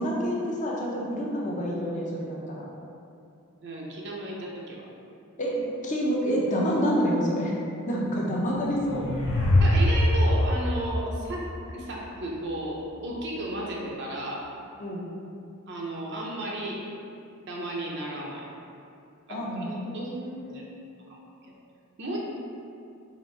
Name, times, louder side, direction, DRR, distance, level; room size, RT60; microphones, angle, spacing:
voice 1, 0.0-2.6 5.4-7.5 7.9-9.1 14.8-15.0 19.3-20.7, equal, 35° left, -4 dB, 0.7 m, -28 dB
voice 2, 3.6-4.8 9.6-14.5 15.7-16.8 17.5-18.4 19.3-19.6 19.9-20.1 20.5-20.6 21.1-21.2 22.0-22.2, right 1 dB, 55° right, -2 dB, 0.5 m, -34 dB
sound 1, 8.5-12.0, left 1 dB, 75° left, 0.8 m, -23 dB
4.8 x 2.6 x 3.1 m, 2.5 s
head